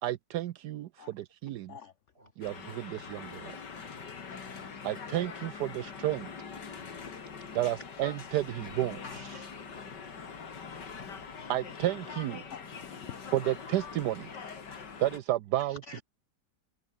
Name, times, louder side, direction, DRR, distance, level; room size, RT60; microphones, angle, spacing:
voice 1, 0.0-1.8 2.4-3.6 4.8-6.3 7.5-9.4 11.5-12.4 13.3-14.3 15.0-15.8, right 14 dB, 75° right, 1.2 m, -32 dB
sound 1, 2.4-15.2, left 5 dB, 75° left, 2.9 m, -43 dB
voice 2, 3.8-4.2 6.7-7.5 9.5-10.0 14.5-14.9, right 1 dB, 35° right, 7.4 m, -61 dB
voice 3, 12.5-13.2 15.7-16.0, left 7 dB, 60° left, 0.8 m, -46 dB
omnidirectional pair, 1.9 m